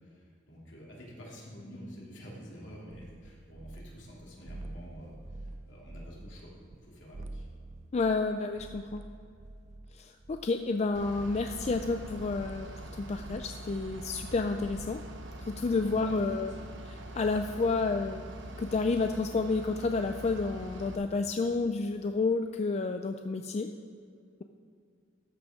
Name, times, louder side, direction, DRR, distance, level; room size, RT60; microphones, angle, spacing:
voice 1, 0.0-7.4 15.9-16.6, equal, 70° left, -4 dB, 2.9 m, -48 dB
sound 1, 2.9-4.1 4.5-6.8 7.1-14.9, right 2 dB, 35° right, 0.5 m, -47 dB
voice 2, 7.9-9.0 9.9-12.7 12.9-15.0 15.4-16.5 17.1-18.3 18.6-23.7, left 3 dB, 35° left, 7 dB, 0.4 m, -30 dB
Bus / Idling, 10.9-21.0, right 1 dB, 70° right, 1.0 m, -44 dB
13.5 x 6.0 x 5.2 m, 2.4 s
head